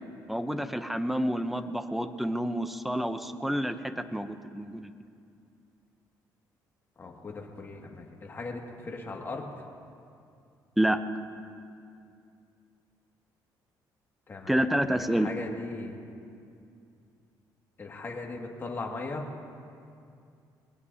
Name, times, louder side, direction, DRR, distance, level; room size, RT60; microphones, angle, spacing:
voice 1, 0.3-4.9 10.8-11.0 14.5-15.3, right 1 dB, ahead, 9 dB, 0.7 m, -28 dB
voice 2, 7.0-9.6 14.3-16.0 17.8-19.3, left 3 dB, 30° left, 0 dB, 2.1 m, -38 dB
22.0 x 18.0 x 2.8 m, 2.5 s
cardioid pair, 120°, 8 cm